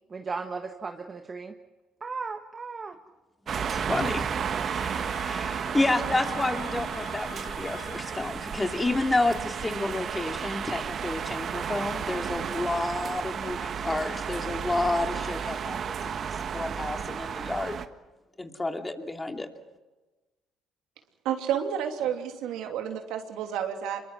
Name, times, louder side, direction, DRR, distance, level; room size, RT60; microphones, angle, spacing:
voice 1, 0.1-1.5 2.0-3.0, right 4 dB, 35° right, 5 dB, 1.5 m, -36 dB
sound 1, 3.5-17.9, right 7 dB, 55° right, 1.5 m, -33 dB
voice 2, 3.7-17.8 18.4-19.5, left 2 dB, 20° left, 4 dB, 2.9 m, -30 dB
sound 2, 4.4-8.6, left 5 dB, 70° left, 4.7 m, -46 dB
voice 3, 21.2-24.0, right 9 dB, 75° right, 4 dB, 2.9 m, -30 dB
26.0 x 23.0 x 6.2 m, 1.2 s
hypercardioid pair, 60°, 0 cm